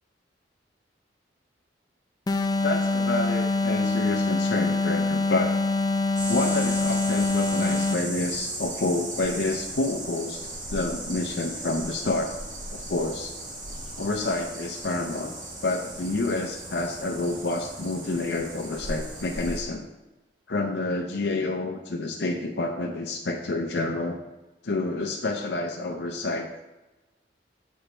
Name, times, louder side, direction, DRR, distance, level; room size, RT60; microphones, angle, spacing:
sound 1, 2.3-8.2, left 3 dB, 20° left, 0.4 m, -25 dB
voice 1, 2.6-5.6 6.3-12.3 12.7-13.4 14.0-15.4 15.6-19.9 20.5-24.2 24.6-26.5, left 2 dB, 70° left, 1 dB, 0.6 m, -28 dB
sound 2, 6.2-19.6, right 2 dB, 45° right, 1.6 m, -37 dB
7.0 x 5.5 x 4.3 m, 1.1 s
head